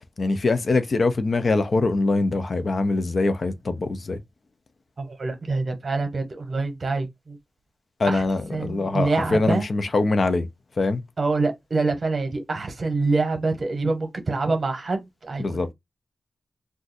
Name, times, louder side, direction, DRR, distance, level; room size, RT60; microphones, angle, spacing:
voice 1, 0.2-4.2 8.0-10.5 10.8-11.0 15.4-15.7, left 3 dB, 45° left, 0.5 m, -23 dB
voice 2, 5.0-7.4 8.1-8.2 8.5-9.6 11.2-15.7, right 3 dB, 40° right, 0.9 m, -26 dB
2.5 x 2.3 x 4.0 m
wide cardioid pair, 155°, 0 cm